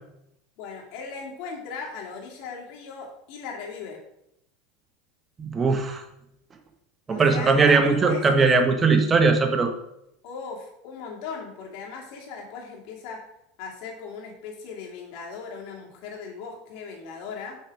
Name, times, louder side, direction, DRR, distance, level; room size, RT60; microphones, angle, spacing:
voice 1, 0.6-4.0 7.1-8.2 10.2-13.2 13.6-17.6, left 5 dB, 60° left, -1 dB, 2.6 m, -38 dB
voice 2, 5.4-6.0 7.1-9.7, right 4 dB, 20° right, 6 dB, 1.2 m, -20 dB
6.4 x 6.2 x 4.9 m, 0.80 s
supercardioid pair, 125°, 0 cm